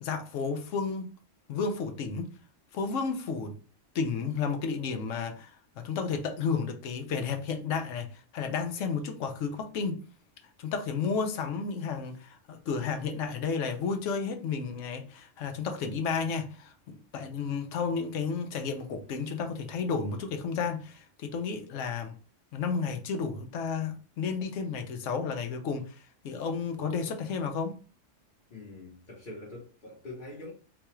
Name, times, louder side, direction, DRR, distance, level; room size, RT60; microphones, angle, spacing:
voice 1, 0.0-1.1 1.5-2.3 2.7-3.6 3.9-8.1 8.3-10.0 10.6-22.2 22.5-27.8, left 5 dB, 75° left, 1.0 m, -32 dB
voice 2, 28.5-30.5, left 2 dB, 45° left, 1.1 m, -44 dB
3.9 x 2.3 x 3.0 m
omnidirectional pair, 1.3 m